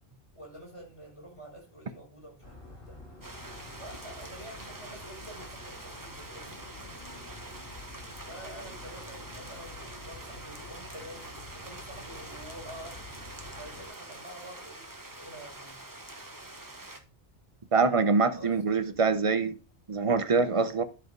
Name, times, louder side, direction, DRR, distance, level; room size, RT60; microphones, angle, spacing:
voice 1, 0.3-3.0 3.8-6.6 8.3-15.8 18.4-18.6 20.5-20.8, right 1 dB, 25° left, 5.6 m, -48 dB
sound 1, 2.4-13.9, left 2 dB, 55° left, 4.0 m, -49 dB
sound 2, 3.2-17.0, right 2 dB, 20° right, 1.1 m, -45 dB
voice 2, 17.7-19.5 19.9-20.8, right 4 dB, 35° right, 0.7 m, -24 dB
11.0 x 4.8 x 5.3 m
omnidirectional pair, 1.2 m